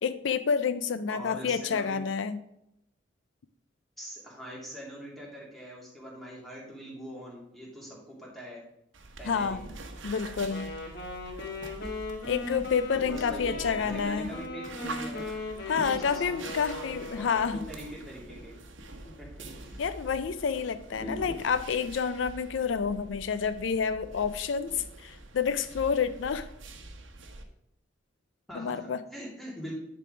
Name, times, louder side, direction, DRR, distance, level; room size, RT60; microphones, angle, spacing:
voice 1, 0.0-2.4 9.2-9.7 10.0-10.7 12.3-14.3 14.8-14.9 15.7-17.6 19.8-26.5 28.5-29.0, left 6 dB, 80° left, 12 dB, 0.4 m, -29 dB
voice 2, 1.1-2.0 4.0-8.6 9.2-9.6 13.0-15.3 15.6-18.5 19.0-19.8 21.0-21.4 28.5-29.7, equal, ahead, -4 dB, 2.3 m, -43 dB
sound 1, 8.9-27.4, right 2 dB, 85° right, 1.0 m, -45 dB
Wind instrument woodwind instrument, 10.4-17.7, left 2 dB, 60° left, 1.8 m, -38 dB
10.0 x 4.0 x 4.8 m, 0.81 s
head